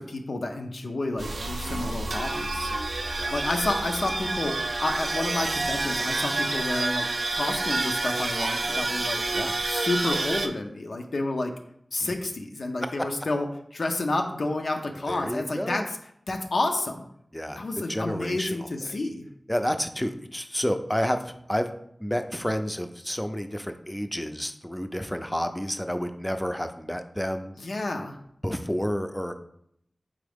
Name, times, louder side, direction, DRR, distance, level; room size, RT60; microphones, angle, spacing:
voice 1, 0.0-2.7 3.3-7.1 7.3-9.2 9.6-11.5 11.9-13.5 13.7-15.8 16.3-17.1 17.6-19.2 27.6-28.2, left 2 dB, 85° left, 3 dB, 0.5 m, -30 dB
sound 1, 1.2-10.5, right 2 dB, 75° right, 0.4 m, -28 dB
voice 2, 15.1-15.8 17.3-18.7 19.5-21.7 22.0-27.5 28.4-29.4, equal, 10° left, 8 dB, 0.4 m, -30 dB
4.2 x 3.6 x 3.5 m, 0.71 s
wide cardioid pair, 75°, 0 cm